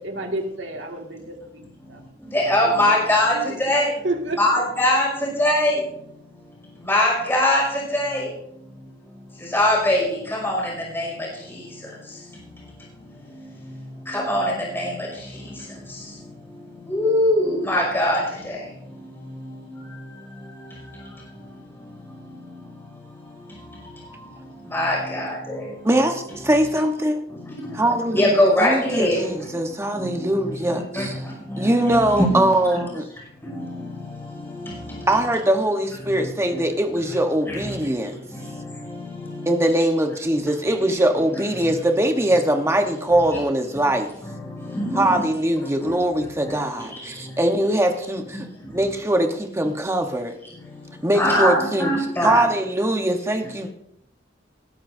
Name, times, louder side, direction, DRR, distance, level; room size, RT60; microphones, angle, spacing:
voice 1, 0.0-1.5 1.9-2.0 2.6-3.6 4.0-4.4, right 2 dB, 75° right, 2 dB, 2.1 m, -30 dB
voice 2, 2.2-3.9 4.4-5.9 6.8-8.3 9.4-12.2 14.1-16.2 16.5-21.5 21.8-22.8 23.2-24.3 24.6-25.7 27.3-27.8 28.1-29.5 30.0-32.9 33.4-35.1 36.2-36.6 37.5-37.8 38.3-39.7 40.3-40.4 41.6-41.7 43.1-43.2 43.8-43.9 44.2-45.2 45.8-46.0 46.4-47.3 48.3-48.7 50.6-50.9 51.1-52.4, left 1 dB, 15° left, -3 dB, 5.8 m, -24 dB
voice 3, 25.8-27.3 27.7-31.2 31.6-33.0 35.1-38.1 39.5-44.1 44.9-50.3 51.0-51.9 52.2-53.7, right 1 dB, 15° right, 5 dB, 1.1 m, -22 dB
20.0 x 12.5 x 2.7 m, 0.74 s
head